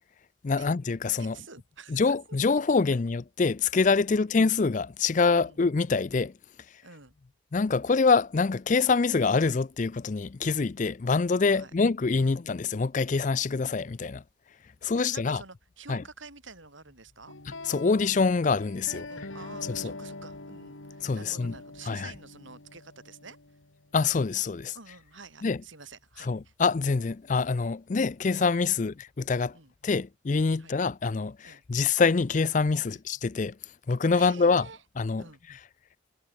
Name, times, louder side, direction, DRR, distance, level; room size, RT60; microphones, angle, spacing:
voice 1, 0.4-1.4 1.9-6.3 7.5-14.2 14.8-15.4 15.9-16.0 17.7-19.0 19.7-19.9 21.0-21.5 21.9-22.1 23.9-24.7 25.4-25.6 26.2-29.6 29.8-33.6 33.9-34.7 35.0-35.2, left 4 dB, 40° left, 0.4 m, -25 dB
voice 2, 1.2-2.0 4.1-4.3 5.4-5.6 6.8-7.1 11.5-11.7 12.2-12.4 15.0-17.3 18.9-23.4 24.7-26.5 28.7-28.9 29.5-29.7 30.6-30.8 31.4-31.6 32.9-33.0 34.1-34.8 35.2-35.4, right 4 dB, 75° right, 6.6 m, -48 dB
sound 1, 17.3-24.3, left 2 dB, 85° left, 2.9 m, -44 dB
head